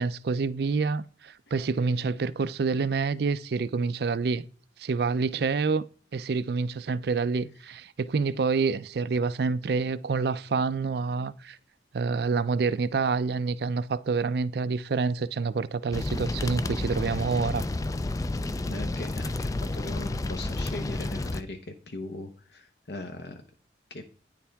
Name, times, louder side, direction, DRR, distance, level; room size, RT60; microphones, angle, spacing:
voice 1, 0.0-4.5 4.8-5.8 6.1-11.6 11.9-17.6, right 4 dB, 60° right, 0.4 m, -27 dB
sound 1, 15.9-21.4, left 2 dB, 20° left, 0.3 m, -31 dB
voice 2, 18.6-23.4 23.9-24.0, left 2 dB, 65° left, 0.9 m, -39 dB
9.4 x 7.1 x 3.5 m
head